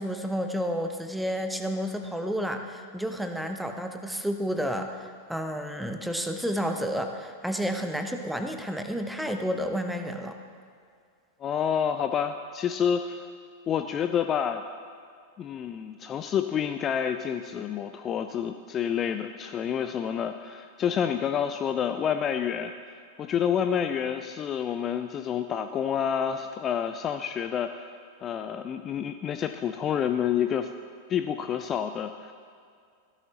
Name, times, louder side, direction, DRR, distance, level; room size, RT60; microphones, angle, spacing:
voice 1, 0.0-10.4, equal, ahead, 5 dB, 0.9 m, -31 dB
voice 2, 11.4-13.3 13.7-14.6 15.4-22.7 23.2-27.9 28.2-30.7 31.1-32.3, left 8 dB, 30° left, 8 dB, 0.4 m, -28 dB
15.5 x 13.0 x 3.0 m, 2.2 s
figure-of-eight pair, 90°, 0 cm